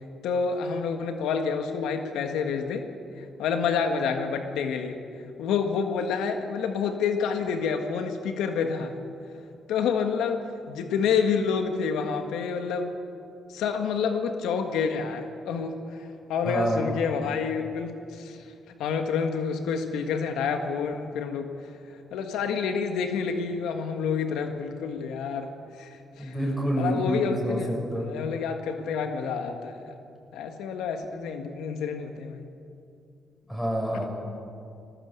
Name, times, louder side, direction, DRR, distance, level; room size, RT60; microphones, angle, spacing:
voice 1, 0.2-2.9 3.2-5.0 5.4-9.0 9.7-12.9 13.5-18.5 18.8-21.5 21.9-25.5 25.8-26.3 26.8-29.9 30.3-32.5, left 6 dB, 85° left, 6 dB, 1.6 m, -28 dB
voice 2, 16.4-16.9 26.2-27.6 27.9-28.1 33.5-34.1, right 1 dB, 5° left, -1 dB, 7.3 m, -27 dB
20.0 x 18.0 x 8.2 m, 2.5 s
cardioid pair, 90°, 0 cm